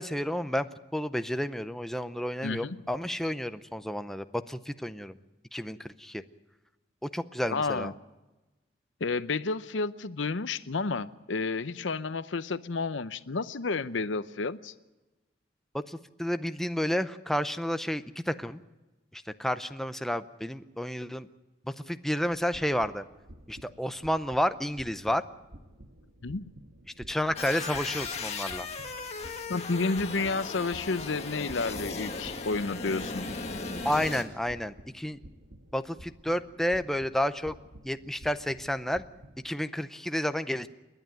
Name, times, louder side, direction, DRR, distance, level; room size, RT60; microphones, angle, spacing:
voice 1, 0.0-5.1 5.5-6.2 7.0-7.9 15.7-18.6 19.1-21.3 21.7-23.0 23.5-25.2 27.1-28.7 33.8-35.2 35.7-37.6 37.8-39.0 39.4-40.7, equal, ahead, 10 dB, 0.6 m, -31 dB
voice 2, 2.4-2.8 7.5-7.9 9.0-14.7 26.2-26.5 29.5-33.3, left 3 dB, 85° left, 14 dB, 0.8 m, -31 dB
sound 1, 22.2-39.5, right 1 dB, 80° right, 1.6 m, -52 dB
sound 2, 27.4-34.2, left 4 dB, 35° left, 1.9 m, -37 dB
29.0 x 11.0 x 8.9 m, 1.1 s
head